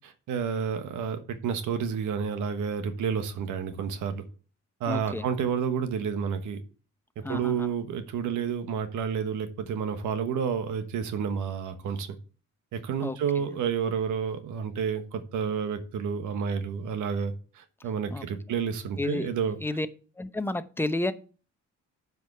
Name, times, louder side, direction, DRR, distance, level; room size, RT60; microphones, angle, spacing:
voice 1, 0.0-4.2 4.8-6.6 7.2-12.2 12.7-19.6, right 7 dB, 80° right, 1.3 m, -30 dB
voice 2, 4.9-5.2 7.2-7.7 13.0-13.2 18.1-18.2 19.0-19.3 19.6-19.9 20.2-21.1, left 2 dB, 5° left, 0.8 m, -30 dB
7.8 x 5.0 x 6.9 m
cardioid pair, 90°, 30 cm